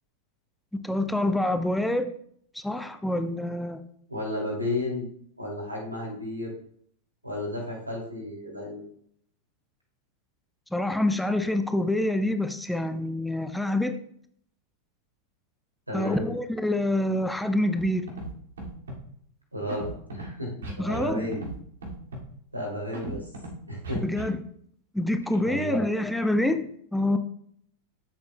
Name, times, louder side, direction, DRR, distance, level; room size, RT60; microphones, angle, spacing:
voice 1, 0.8-2.1 2.5-3.8 10.7-14.0 15.9-18.0 20.8-21.4 23.1-23.2 24.0-24.4 24.9-27.2, left 1 dB, 5° left, 8 dB, 0.7 m, -26 dB
voice 2, 4.1-5.1 5.4-6.5 7.2-8.8 15.9-16.3 19.5-21.5 22.5-23.3 23.7-24.0 25.4-25.8, left 1 dB, 85° right, -1 dB, 2.5 m, -33 dB
Scratching (performance technique), 17.8-17.9 18.1-18.3 18.6-19.0 19.7-20.2 20.6-21.1 21.3-21.5 21.8-22.2 22.9-23.5 23.8-24.2, right 2 dB, 65° right, 2.3 m, -36 dB
12.5 x 7.1 x 2.2 m, 0.65 s
figure-of-eight pair, 90°, 0 cm